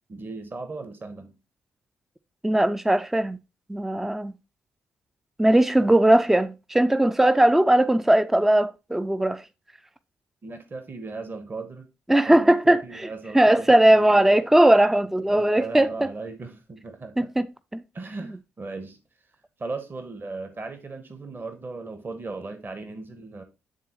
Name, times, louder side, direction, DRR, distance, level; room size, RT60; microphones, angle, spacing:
voice 1, 0.1-1.4 10.4-11.9 12.3-14.5 15.3-17.3 17.9-19.0 19.6-23.4, right 3 dB, 35° right, 1.1 m, -37 dB
voice 2, 2.4-3.4 3.7-4.3 5.4-9.4 12.1-12.8 13.3-16.1 17.2-17.5 17.7-17.8, right 1 dB, 5° right, 0.4 m, -19 dB
9.3 x 3.6 x 2.9 m
hypercardioid pair, 40°, 6 cm